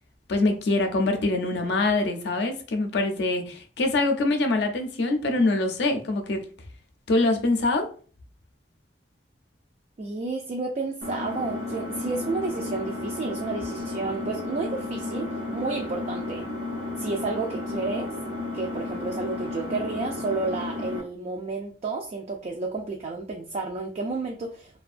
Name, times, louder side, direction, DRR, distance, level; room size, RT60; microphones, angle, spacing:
voice 1, 0.3-6.4 7.1-7.9, left 2 dB, 65° left, 5 dB, 0.5 m, -24 dB
voice 2, 10.0-16.5 17.0-18.1 18.5-24.8, right 3 dB, 40° right, 1 dB, 0.3 m, -31 dB
Engine, 11.0-21.0, left 2 dB, 90° right, 0.8 m, -33 dB
2.4 x 2.2 x 2.4 m, 0.41 s
head